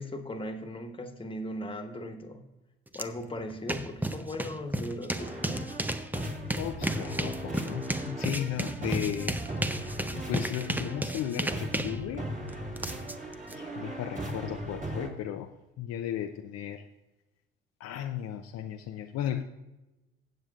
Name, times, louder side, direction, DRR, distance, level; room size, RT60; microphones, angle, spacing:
voice 1, 0.0-2.4 2.9-5.7, left 1 dB, 15° left, 4 dB, 1.5 m, -38 dB
sound 1, 2.9-3.0 3.4-13.5, right 1 dB, 5° right, 0.6 m, -34 dB
sound 2, 5.2-15.1, right 1 dB, 25° right, 2.4 m, -38 dB
voice 2, 6.6-9.4 10.1-12.3 13.5-16.9 17.8-19.4, left 10 dB, 55° left, 5 dB, 0.7 m, -35 dB
17.0 x 7.6 x 2.5 m, 1.0 s
hypercardioid pair, 65°, 31 cm